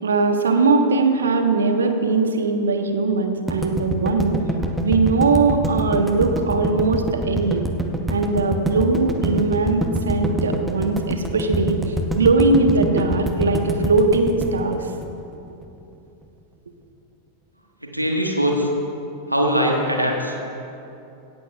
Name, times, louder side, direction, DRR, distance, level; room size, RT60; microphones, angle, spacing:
voice 1, 0.0-4.4 4.8-7.6 8.1-11.8 12.1-14.9, right 3 dB, 70° right, 6 dB, 1.1 m, -20 dB
sound 1, 3.5-15.6, right 1 dB, 5° right, 1.0 m, -25 dB
voice 2, 17.9-18.7 19.3-20.3, equal, 90° right, 0 dB, 1.5 m, -21 dB
18.0 x 14.0 x 2.4 m, 2.8 s
figure-of-eight pair, 90°, 0 cm